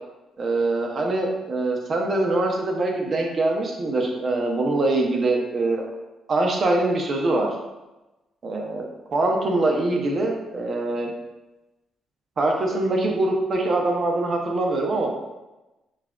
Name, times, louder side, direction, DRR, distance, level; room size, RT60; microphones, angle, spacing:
voice 1, 0.4-5.8 6.3-7.5 8.4-8.8 9.1-11.1 12.4-15.1, right 2 dB, 45° right, 1 dB, 0.7 m, -23 dB
5.4 x 2.5 x 2.3 m, 1.0 s
cardioid pair, 90°, 0 cm